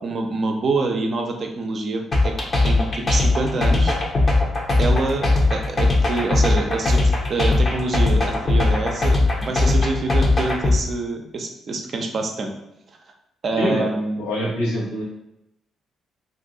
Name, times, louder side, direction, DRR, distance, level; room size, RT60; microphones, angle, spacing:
voice 1, 0.0-2.3 2.6-4.0 4.8-12.5 13.4-14.2, right 3 dB, 55° right, 2 dB, 0.6 m, -26 dB
sound 1, 2.1-10.8, left 2 dB, 45° left, 0.9 m, -18 dB
voice 2, 14.2-15.0, equal, 85° left, -5 dB, 1.0 m, -24 dB
2.6 x 2.6 x 3.9 m, 0.86 s
hypercardioid pair, 50°, 0 cm